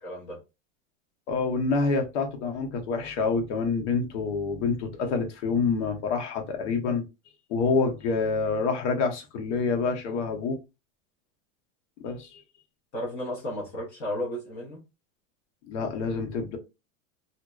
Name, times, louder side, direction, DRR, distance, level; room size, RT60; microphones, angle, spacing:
voice 1, 0.0-0.4 12.9-14.8, left 1 dB, 35° left, 0.8 m, -33 dB
voice 2, 1.3-7.0 7.5-10.6 12.0-12.4 15.7-16.6, left 4 dB, 65° left, 0.8 m, -27 dB
2.5 x 2.1 x 2.2 m
supercardioid pair, 170°, 38 cm